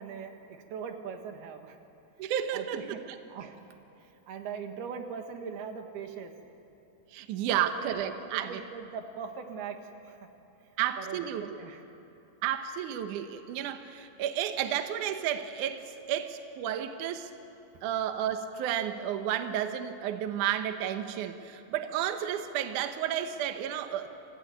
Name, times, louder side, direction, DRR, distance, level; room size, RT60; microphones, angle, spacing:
voice 1, 0.0-1.8 2.5-3.0 3.3-3.6 4.0-6.3 7.4-8.0 8.3-10.2 11.0-11.3 11.6-11.8, right 6 dB, 65° right, 5 dB, 3.3 m, -40 dB
voice 2, 2.2-2.9 7.1-8.6 10.8-11.6 12.4-17.3 17.8-24.1, right 10 dB, 90° right, 8 dB, 1.7 m, -32 dB
26.0 x 17.5 x 9.4 m, 2.9 s
omnidirectional pair, 5.3 m